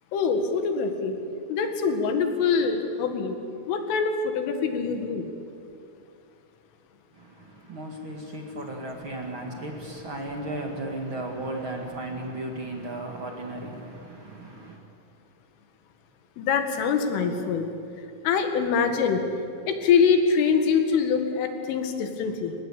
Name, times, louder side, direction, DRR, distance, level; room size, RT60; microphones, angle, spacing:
voice 1, 0.1-1.2 1.5-3.4 3.7-5.3 16.4-17.7 18.0-19.2 19.7-22.6, left 6 dB, 75° left, 6 dB, 4.5 m, -24 dB
voice 2, 7.1-14.8, right 1 dB, 55° right, 1 dB, 1.3 m, -35 dB
29.5 x 17.5 x 8.4 m, 2.6 s
omnidirectional pair, 5.8 m